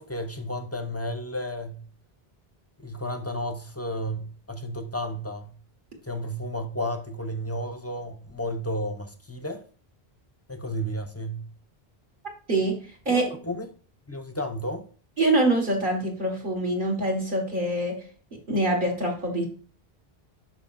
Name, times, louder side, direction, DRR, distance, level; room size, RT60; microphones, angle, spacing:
voice 1, 0.0-1.8 2.8-5.5 6.0-9.6 10.5-11.4 13.1-13.7 14.1-14.8, equal, 15° left, 0.6 m, -32 dB
voice 2, 15.2-18.0 18.5-19.5, right 2 dB, 55° right, 1.9 m, -24 dB
11.5 x 4.5 x 2.6 m
omnidirectional pair, 1.1 m